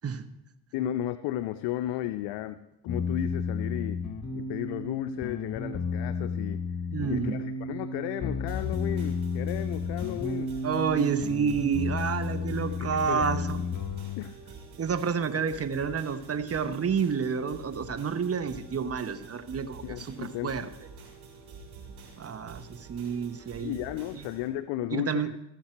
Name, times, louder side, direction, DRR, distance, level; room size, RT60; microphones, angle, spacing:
voice 1, 0.7-4.0 4.4-6.6 7.1-10.5 12.8-13.7 14.2-14.5 19.8-20.5 23.6-25.4, left 13 dB, 75° left, 11 dB, 0.6 m, -34 dB
sound 1, 2.9-14.2, left 4 dB, 45° left, 1.6 m, -32 dB
voice 2, 6.9-7.4 10.6-13.6 14.8-20.7 22.2-23.8 24.1-24.2 24.9-25.3, right 6 dB, 35° right, 11 dB, 1.0 m, -29 dB
sound 2, 8.5-24.5, right 5 dB, 60° right, 4.0 m, -47 dB
14.5 x 7.4 x 4.5 m, 0.87 s
supercardioid pair, 65°, 43 cm